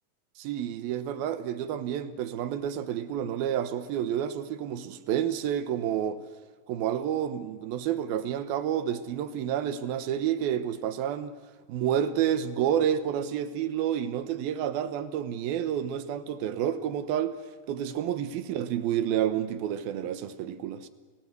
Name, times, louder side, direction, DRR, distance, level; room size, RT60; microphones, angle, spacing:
voice 1, 0.4-6.2 6.7-11.3 11.7-17.3 17.7-20.9, right 10 dB, 70° right, 2.5 m, -29 dB
29.5 x 18.0 x 8.2 m
omnidirectional pair, 5.0 m